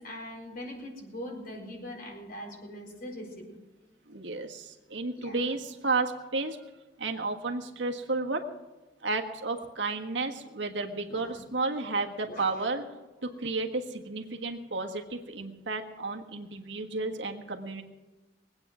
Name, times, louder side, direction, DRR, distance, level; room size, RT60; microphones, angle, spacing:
voice 1, 0.0-3.5 5.2-5.4 11.1-11.4 12.2-12.6, left 1 dB, 55° left, 0 dB, 4.1 m, -42 dB
voice 2, 4.1-6.6 7.0-8.4 9.0-12.8 13.2-17.8, right 3 dB, 80° right, 3 dB, 1.5 m, -32 dB
21.5 x 8.9 x 6.2 m, 1.2 s
head